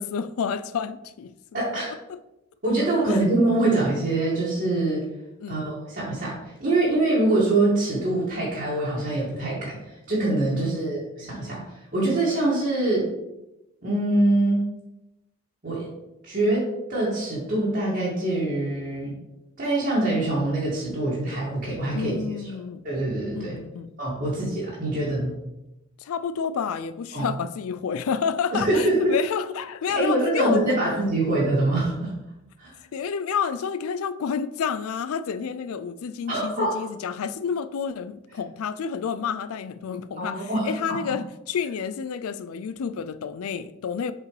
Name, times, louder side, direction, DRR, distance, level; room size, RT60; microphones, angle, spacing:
voice 1, 0.0-1.6 3.1-3.2 5.4-5.7 10.5-11.0 21.9-22.8 23.3-23.9 26.0-30.9 32.9-44.1, left 6 dB, 80° left, 0.4 m, -29 dB
voice 2, 1.5-1.9 2.6-5.0 5.5-6.3 6.6-9.8 10.1-11.6 11.9-13.1 13.8-14.6 15.6-15.9 16.2-16.6 16.9-19.1 19.6-22.1 22.8-23.5 24.0-25.3 27.1-27.3 28.5-28.9 30.0-32.1 32.6-32.8 36.3-36.8 40.2-41.0, right 2 dB, 45° right, 2.0 m, -24 dB
7.1 x 4.8 x 3.2 m
head